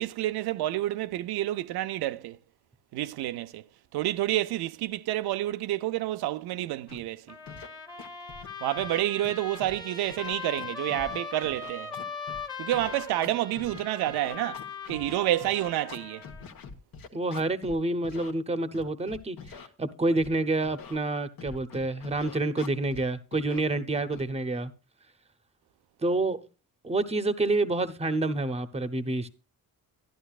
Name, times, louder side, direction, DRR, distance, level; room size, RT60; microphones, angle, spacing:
voice 1, 0.0-2.4 2.9-3.6 3.9-7.3 8.6-11.9 12.6-16.2, right 14 dB, 90° right, 0.5 m, -29 dB
Scratching (performance technique), 6.9-7.0 7.5-7.7 8.0-8.5 8.8-9.8 10.1-12.4 12.7-17.8 18.0-18.3 18.7-19.7 20.2-20.3 20.6-21.0 21.4-23.0 23.3-23.6 24.1-24.3, left 5 dB, 65° left, 1.3 m, -44 dB
Trumpet, 7.3-16.5, left 5 dB, 10° left, 1.2 m, -40 dB
voice 2, 17.1-19.4 19.8-24.7 26.0-26.4 26.8-29.3, right 2 dB, 15° right, 0.8 m, -28 dB
11.5 x 11.0 x 2.4 m
cardioid pair, 105°, 37 cm